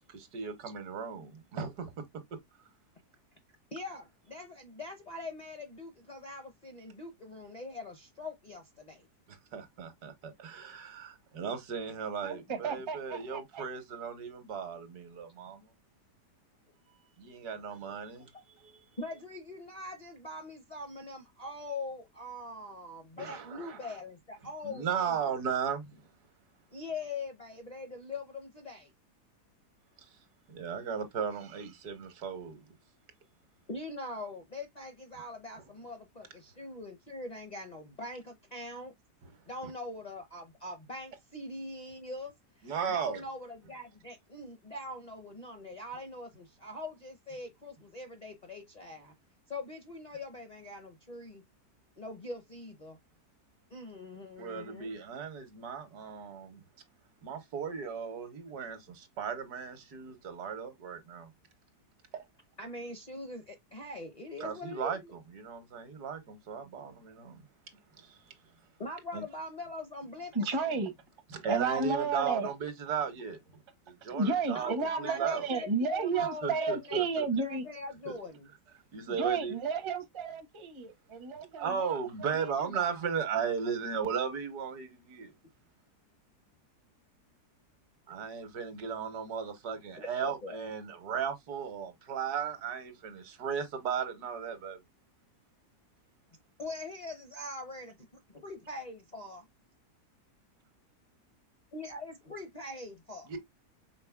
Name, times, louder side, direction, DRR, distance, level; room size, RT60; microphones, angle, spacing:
voice 1, 0.1-2.0 9.3-15.7 17.2-18.7 23.2-23.9 24.6-26.0 30.0-30.1 30.5-32.7 39.6-39.7 42.6-43.2 54.4-56.6 57.2-61.3 62.1-62.2 64.4-67.5 67.9-68.3 69.1-69.2 71.3-75.5 76.2-77.3 78.1-78.2 78.9-79.6 81.6-85.3 88.1-94.8 103.3-103.4, right 6 dB, 75° right, 1.5 m, -36 dB
voice 2, 3.7-9.1 17.5-17.6 18.2-18.3 19.0-25.2 26.7-28.9 33.7-38.9 39.5-49.1 49.5-51.4 52.0-53.0 53.7-54.9 62.6-65.1 68.8-70.9 74.5-78.5 90.0-90.6 96.6-98.0 98.3-99.5 101.7-103.3, left 2 dB, 40° left, 0.6 m, -42 dB
voice 3, 12.2-13.6 70.3-70.9 71.5-72.5 74.1-77.6 79.2-82.0 82.7-82.9, right 4 dB, 30° right, 0.5 m, -32 dB
5.2 x 3.8 x 2.2 m
omnidirectional pair, 1.7 m